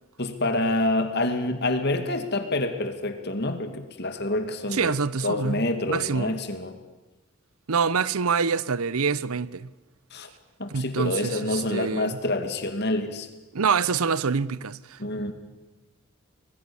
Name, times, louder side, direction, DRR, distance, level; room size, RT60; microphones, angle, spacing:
voice 1, 0.2-5.0 5.2-6.8 10.1-10.3 10.6-13.3 15.0-15.3, left 2 dB, 50° left, 2.4 m, -27 dB
voice 2, 4.7-6.4 7.7-9.7 10.7-12.2 13.5-15.0, right 5 dB, 80° right, 0.7 m, -26 dB
25.0 x 20.5 x 7.1 m
head